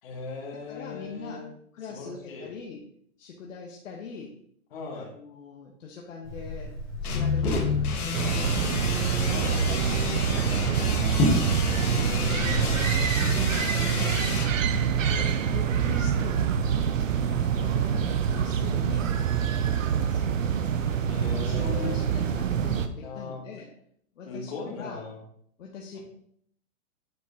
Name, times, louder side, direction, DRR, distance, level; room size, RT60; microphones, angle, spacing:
voice 1, 0.0-1.5 1.9-2.5 4.7-5.1 9.3-9.6 15.1-15.3 21.1-22.2 23.0-23.4 24.2-25.2 25.9-26.0, left 3 dB, 40° left, -3 dB, 2.5 m, -38 dB
voice 2, 0.7-1.4 1.7-2.9 3.2-4.4 4.9-6.7 7.0-8.9 9.7-11.1 11.7-12.9 13.2-14.3 14.7-15.2 15.5-16.6 17.3-20.4 21.3-23.7 24.2-24.5 24.8-25.0 25.6-26.0, left 5 dB, 60° left, -1 dB, 1.3 m, -41 dB
Liquid, 6.2-13.0, left 1 dB, 5° left, 0.9 m, -32 dB
sound 1, 7.0-14.5, left 5 dB, 80° left, 1.8 m, -31 dB
sound 2, 8.1-22.9, right 8 dB, 60° right, 0.8 m, -26 dB
9.0 x 4.9 x 2.9 m, 0.66 s
hypercardioid pair, 175°, 44 cm